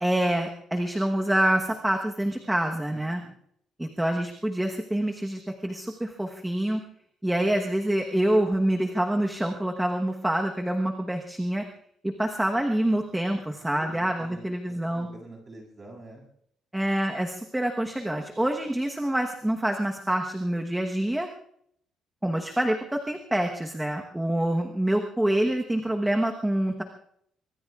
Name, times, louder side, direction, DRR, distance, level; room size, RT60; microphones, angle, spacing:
voice 1, 0.0-3.2 3.8-6.8 7.2-11.6 12.0-15.1 16.7-21.3 22.2-26.8, right 1 dB, 5° right, 2 dB, 1.1 m, -26 dB
voice 2, 2.9-3.3 13.6-16.2 24.1-24.2, right 2 dB, 25° right, 0 dB, 7.7 m, -46 dB
24.5 x 24.0 x 2.4 m, 0.69 s
cardioid pair, 155°, 0 cm